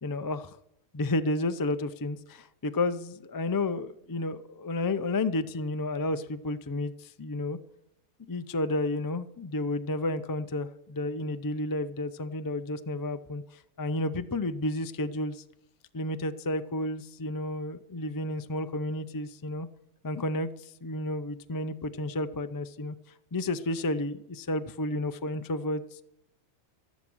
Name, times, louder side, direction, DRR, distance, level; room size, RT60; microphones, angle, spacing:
voice 1, 0.0-0.6 0.9-7.6 8.3-15.4 15.9-19.7 20.0-23.0 23.3-26.0, left 2 dB, 30° left, 11 dB, 0.4 m, -31 dB
13.0 x 11.0 x 6.2 m, 0.80 s
omnidirectional pair, 1.2 m